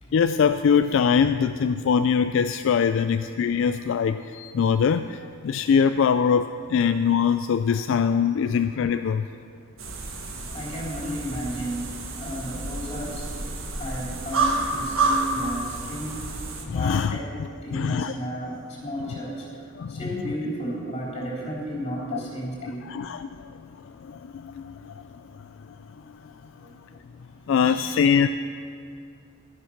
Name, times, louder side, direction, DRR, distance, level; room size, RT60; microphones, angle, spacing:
voice 1, 0.1-9.3 16.7-18.1 19.8-20.0 22.1-22.2 22.6-25.8 26.1-26.3 27.5-28.3, left 6 dB, 65° left, 10 dB, 0.3 m, -23 dB
sound 1, 9.8-16.6, right 3 dB, 75° right, 1.5 m, -29 dB
voice 2, 10.4-13.5 13.8-16.2 16.7-17.3 17.6-23.0 26.5-26.8 27.3-28.2, equal, 30° left, -5 dB, 3.7 m, -33 dB
12.5 x 10.0 x 5.8 m, 2.4 s
head